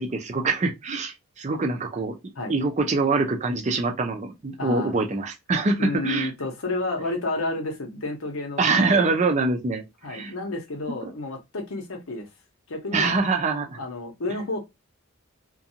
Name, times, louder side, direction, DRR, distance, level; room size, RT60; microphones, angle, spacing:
voice 1, 0.0-2.1 2.5-6.3 8.6-9.8 10.1-10.3 12.9-13.8, right 3 dB, 35° right, 0.4 m, -24 dB
voice 2, 4.6-4.9 5.8-9.2 10.0-12.3 12.7-13.1 13.8-14.6, left 2 dB, 85° left, 0.9 m, -31 dB
2.5 x 2.2 x 2.7 m
head